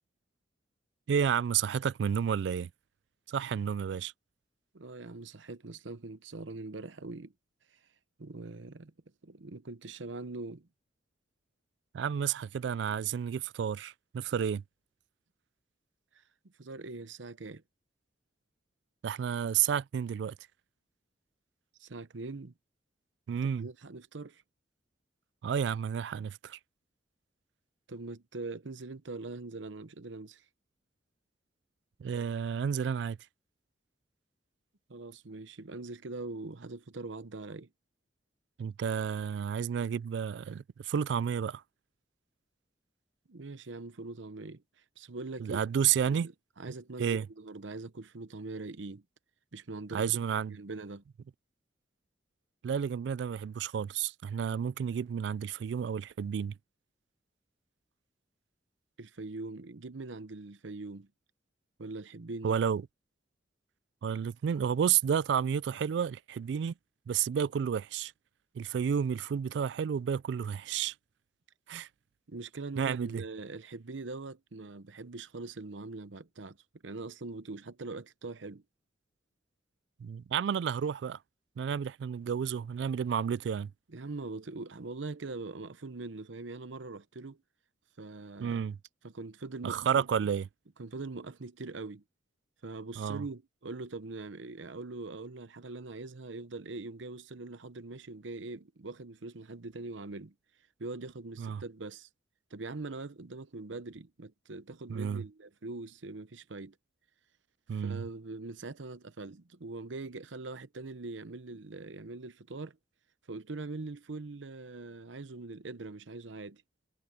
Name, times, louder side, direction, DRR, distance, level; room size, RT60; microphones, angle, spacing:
voice 1, 1.1-2.7 3.3-4.1 11.9-14.6 19.0-20.4 23.3-23.7 25.4-26.6 32.0-33.2 38.6-41.6 45.4-46.3 47.0-47.3 49.9-50.5 52.6-56.5 62.4-62.8 64.0-66.7 67.1-68.1 68.5-70.9 71.7-71.9 72.8-73.2 80.0-81.2 81.6-83.7 88.4-88.8 89.6-90.5 93.0-93.2 101.4-101.6 104.9-105.2 107.7-108.0, right 8 dB, 70° right, 0.3 m, -31 dB
voice 2, 4.7-7.3 8.2-8.9 9.2-10.7 16.4-17.6 21.8-22.5 23.6-24.4 27.9-30.4 34.9-37.7 43.3-44.6 45.0-45.7 46.1-49.0 49.5-50.1 50.5-51.0 59.0-61.1 61.8-62.6 72.3-76.6 76.8-78.6 83.9-87.4 88.0-88.6 89.0-90.1 90.8-92.0 92.6-100.3 100.8-102.1 102.5-106.7 107.7-112.8 113.3-116.6, right 3 dB, 85° right, 0.9 m, -42 dB
head